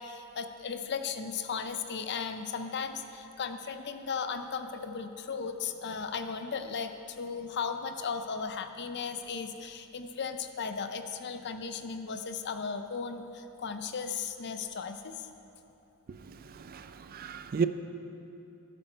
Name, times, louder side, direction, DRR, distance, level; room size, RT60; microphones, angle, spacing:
voice 1, 0.0-15.3, left 5 dB, 50° left, 0.6 m, -36 dB
voice 2, 16.1-17.7, right 5 dB, 40° right, 0.4 m, -34 dB
14.5 x 8.5 x 4.4 m
head